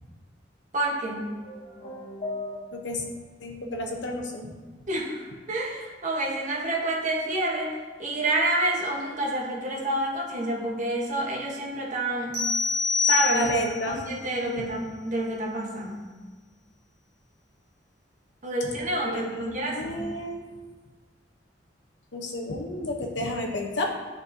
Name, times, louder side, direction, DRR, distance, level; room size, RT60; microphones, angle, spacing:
voice 1, 0.7-1.3 4.9-7.7 8.0-12.4 13.1-13.5 13.9-16.0 18.4-20.0, right 1 dB, 45° right, -2 dB, 1.1 m, -28 dB
sound 1, 1.0-3.1, left 2 dB, 45° left, 1.0 m, -38 dB
voice 2, 2.7-3.1 3.4-4.5 13.3-14.0 14.3-14.7 18.6-18.7 19.1-20.4 22.1-23.9, left 1 dB, 85° left, 2 dB, 0.9 m, -31 dB
sound 2, 12.3-13.9, left 6 dB, 75° right, 1.4 m, -25 dB
9.5 x 4.1 x 2.7 m, 1.3 s
head